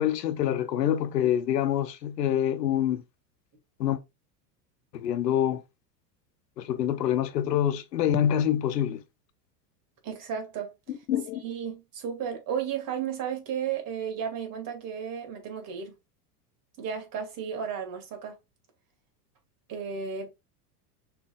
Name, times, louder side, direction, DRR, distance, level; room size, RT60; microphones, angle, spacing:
voice 1, 0.0-3.0 3.8-4.0 4.9-5.6 6.6-9.0 10.9-11.4, left 10 dB, 90° left, 0.9 m, -26 dB
voice 2, 10.0-10.7 11.4-15.9 16.8-18.3 19.7-20.3, right 7 dB, 45° right, 2.3 m, -33 dB
5.9 x 3.5 x 2.5 m
hypercardioid pair, 95°, 48 cm